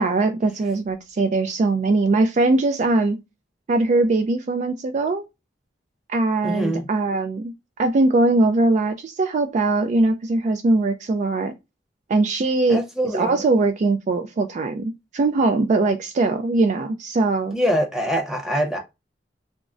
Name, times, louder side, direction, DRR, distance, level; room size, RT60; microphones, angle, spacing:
voice 1, 0.0-3.2 3.7-5.3 6.1-7.5 7.8-11.5 12.1-12.8 13.1-17.6, right 2 dB, 40° right, 0.3 m, -21 dB
voice 2, 6.4-6.9 12.7-13.4 17.5-18.8, equal, 5° right, 0.8 m, -24 dB
3.5 x 2.0 x 2.4 m
head